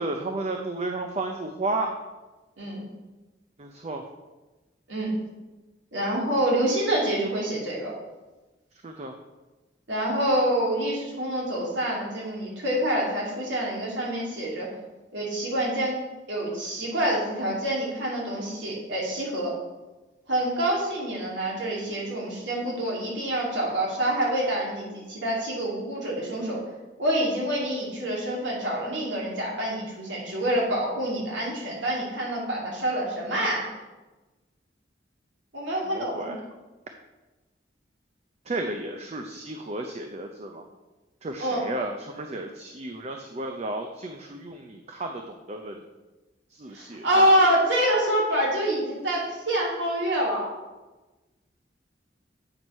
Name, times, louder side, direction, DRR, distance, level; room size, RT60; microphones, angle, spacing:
voice 1, 0.0-1.9 3.6-4.0 8.8-9.1 35.9-36.4 38.5-40.6 41.2-45.8 46.5-47.4, right 2 dB, 35° right, 4 dB, 0.5 m, -33 dB
voice 2, 5.9-7.9 9.9-14.7 15.1-16.0 16.3-19.5 20.3-26.6 27.0-33.7 35.5-36.3 41.4-41.6 46.7-50.5, right 1 dB, 80° right, -4 dB, 2.5 m, -26 dB
7.8 x 4.6 x 5.4 m, 1.2 s
head